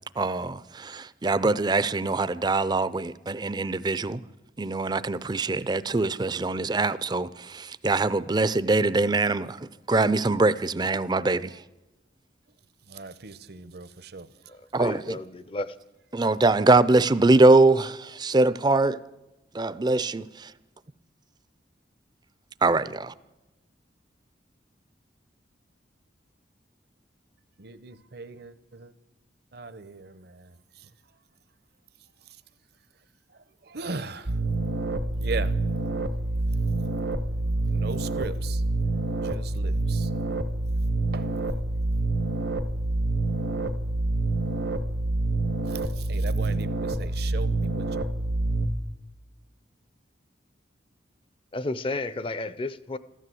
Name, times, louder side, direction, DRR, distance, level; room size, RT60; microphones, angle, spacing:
voice 1, 0.2-4.2 4.6-9.6 9.9-11.5 14.7-15.2 16.1-19.0 19.5-20.5 22.6-23.1, right 2 dB, 25° right, 0.5 m, -23 dB
voice 2, 12.9-14.6 27.6-28.9 29.5-30.9 32.2-32.4 33.3-34.6 35.2-35.6 37.4-38.6 39.1-40.1 40.7-40.8 41.1-41.4 45.7-48.1, right 4 dB, 60° right, 0.8 m, -39 dB
voice 3, 14.5-15.8 51.5-53.0, left 2 dB, 30° left, 0.6 m, -32 dB
sound 1, 34.3-48.7, right 2 dB, 75° right, 1.1 m, -27 dB
14.5 x 12.5 x 7.7 m
head